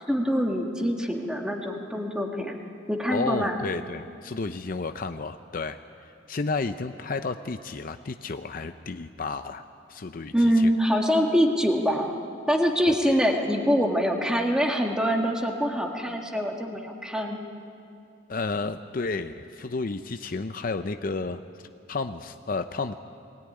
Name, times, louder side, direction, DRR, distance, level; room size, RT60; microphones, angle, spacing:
voice 1, 0.1-2.6 2.9-3.6 10.3-12.1 12.5-17.4, equal, 5° right, 1 dB, 1.8 m, -24 dB
voice 2, 3.1-5.8 6.3-9.6 9.9-10.7 12.9-13.2 18.3-21.4 21.9-23.0, left 3 dB, 45° left, 9 dB, 0.5 m, -32 dB
21.0 x 17.5 x 9.8 m, 2.6 s
head